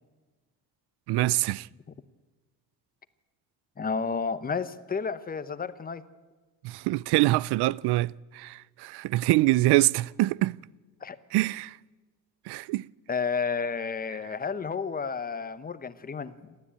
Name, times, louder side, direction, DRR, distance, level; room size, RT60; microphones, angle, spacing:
voice 1, 1.1-1.7 6.6-10.6 11.3-11.8 12.5-12.8, right 18 dB, 85° right, 0.6 m, -25 dB
voice 2, 3.8-6.0 11.0-11.2 13.1-16.5, left 5 dB, 20° left, 1.0 m, -31 dB
28.0 x 13.0 x 8.7 m
cardioid pair, 145°, 39 cm